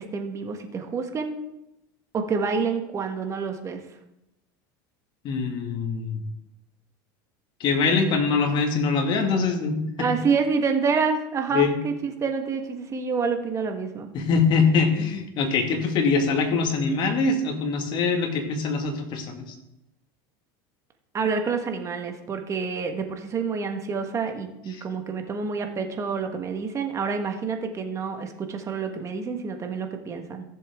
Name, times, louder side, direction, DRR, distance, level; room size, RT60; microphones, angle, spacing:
voice 1, 0.0-1.3 2.1-3.8 10.0-14.1 21.1-30.4, right 5 dB, 30° right, 5 dB, 1.5 m, -28 dB
voice 2, 5.2-6.2 7.6-10.1 11.5-11.8 14.1-19.4, left 4 dB, 45° left, 4 dB, 2.0 m, -23 dB
15.0 x 7.0 x 3.7 m, 0.89 s
supercardioid pair, 120°, 11 cm